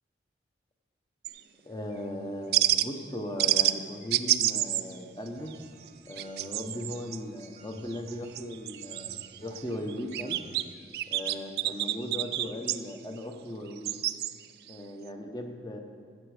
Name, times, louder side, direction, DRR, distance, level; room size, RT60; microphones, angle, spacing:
sound 1, 1.2-1.4 2.5-2.9 3.4-3.8 4.1-4.9 5.3-5.5 5.9-7.2 7.9-9.6 9.9-10.6 10.9-12.8 13.7-14.3 14.7-14.8, right 14 dB, 55° right, 0.3 m, -28 dB
voice 1, 1.6-5.5 6.1-10.4 11.1-13.9 14.7-15.8, left 1 dB, 20° left, 3 dB, 0.9 m, -38 dB
sound 2, 5.4-10.7, right 2 dB, 40° right, 0.8 m, -55 dB
14.0 x 8.2 x 4.9 m, 2.2 s
head